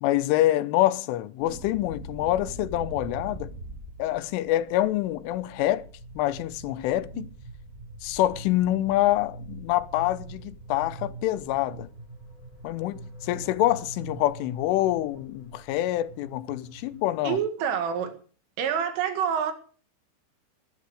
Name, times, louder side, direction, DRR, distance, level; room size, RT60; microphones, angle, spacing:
voice 1, 0.0-3.5 4.0-5.8 6.2-7.3 8.0-11.9 12.6-17.4, left 15 dB, 85° left, 3.4 m, -26 dB
sound 1, 1.4-17.2, right 2 dB, 15° right, 8.2 m, -43 dB
voice 2, 17.2-18.2 18.6-19.5, right 8 dB, 90° right, 4.6 m, -27 dB
19.0 x 12.0 x 4.9 m
omnidirectional pair, 5.5 m